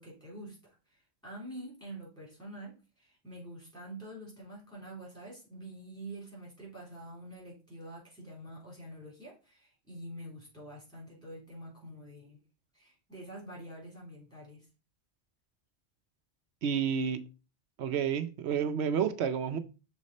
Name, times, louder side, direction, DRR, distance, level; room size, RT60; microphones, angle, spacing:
voice 1, 0.0-12.4 12.7-14.7, right 1 dB, 5° left, 3.6 m, -47 dB
voice 2, 16.6-17.2 17.8-19.6, right 7 dB, 75° right, 0.9 m, -30 dB
6.3 x 3.9 x 4.2 m
omnidirectional pair, 1.1 m